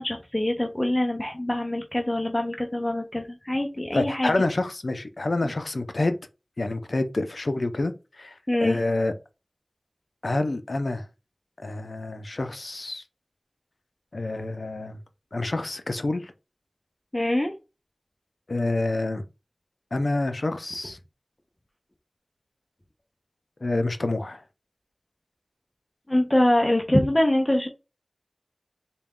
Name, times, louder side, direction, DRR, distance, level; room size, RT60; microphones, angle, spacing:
voice 1, 0.0-4.4 5.4-5.5 8.5-8.8 17.1-17.5 26.1-27.7, left 1 dB, 25° left, 0.6 m, -24 dB
voice 2, 3.9-6.2 6.6-8.3 8.6-9.1 10.2-11.0 11.6-13.0 14.1-15.0 15.3-16.3 18.5-19.2 19.9-21.0 23.6-24.4, left 2 dB, 75° left, 0.5 m, -27 dB
4.0 x 2.2 x 3.6 m
wide cardioid pair, 45°, 0 cm